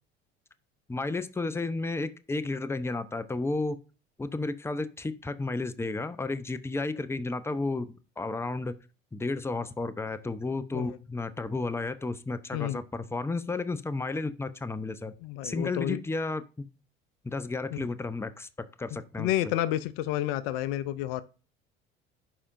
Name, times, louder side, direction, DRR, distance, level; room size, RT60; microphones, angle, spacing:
voice 1, 0.9-3.8 4.2-8.7 9.1-15.1 15.4-16.7 17.2-18.5 18.8-19.3, left 3 dB, 10° left, 0.7 m, -32 dB
voice 2, 15.2-16.0 17.7-17.8 19.2-21.2, left 14 dB, 65° left, 0.6 m, -30 dB
11.0 x 5.0 x 2.6 m
hypercardioid pair, 60°, 31 cm